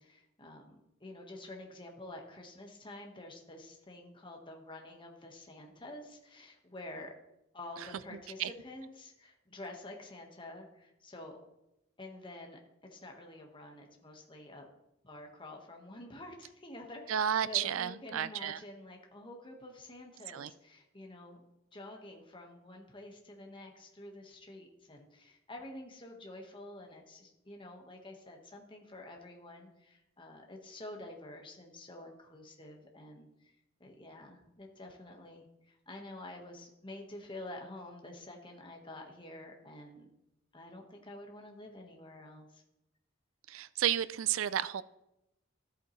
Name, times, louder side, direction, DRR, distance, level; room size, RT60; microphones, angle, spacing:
voice 1, 0.0-7.1 7.5-11.4 12.0-12.6 12.9-14.7 15.0-21.4 21.7-33.5 33.8-40.1 40.5-42.6, left 1 dB, 25° left, 1 dB, 1.5 m, -48 dB
voice 2, 17.1-18.6 20.3-20.5 43.5-44.8, right 10 dB, 85° right, 17 dB, 0.4 m, -32 dB
13.5 x 8.2 x 3.2 m, 0.89 s
head